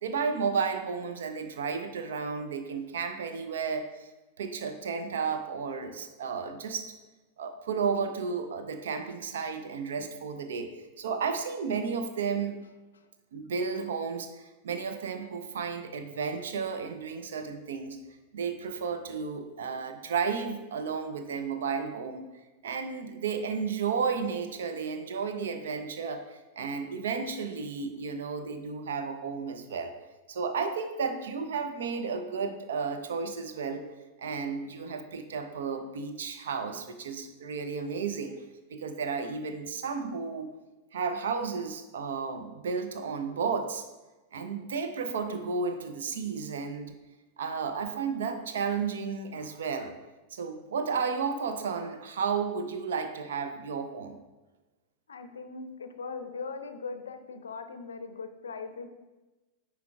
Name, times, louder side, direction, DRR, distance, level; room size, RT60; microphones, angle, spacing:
voice 1, 0.0-4.1 4.4-6.9 7.4-12.6 13.3-14.3 14.6-18.0 18.3-22.3 22.6-29.9 30.3-33.8 34.2-38.3 38.7-40.5 40.9-43.9 44.3-46.9 47.4-49.9 50.3-54.2, right 5 dB, 60° right, 8 dB, 0.6 m, -33 dB
voice 2, 55.1-58.9, left 4 dB, 70° left, 9 dB, 0.5 m, -40 dB
9.4 x 4.6 x 2.4 m, 1.1 s
figure-of-eight pair, 90°, 0 cm